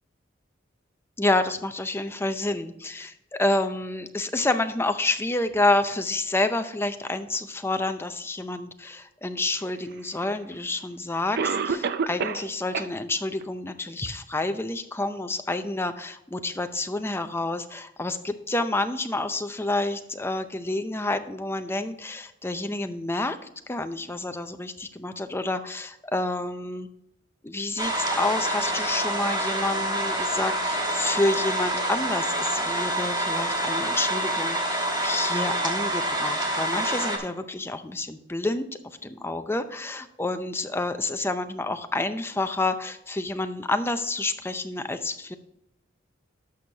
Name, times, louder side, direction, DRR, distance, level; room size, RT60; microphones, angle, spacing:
voice 1, 1.2-26.9 27.4-45.4, left 2 dB, 10° left, 8 dB, 0.5 m, -29 dB
Cough, 10.2-10.3 11.4-12.5 12.7-12.9 13.4-13.5 14.1-14.2, right 5 dB, 55° right, 0.5 m, -27 dB
sound 1, 27.8-37.2, right 1 dB, 20° right, 1.3 m, -27 dB
11.5 x 6.3 x 2.8 m, 0.81 s
head